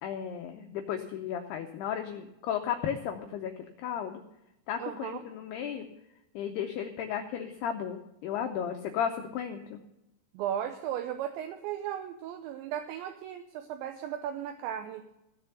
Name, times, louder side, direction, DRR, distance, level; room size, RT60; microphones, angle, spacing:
voice 1, 0.0-3.5 3.8-4.2 4.7-5.9 6.3-9.8, left 8 dB, 80° left, 5 dB, 2.3 m, -34 dB
voice 2, 4.8-5.2 10.3-15.0, right 10 dB, 80° right, 6 dB, 2.8 m, -36 dB
16.0 x 6.9 x 6.8 m, 0.88 s
omnidirectional pair, 5.6 m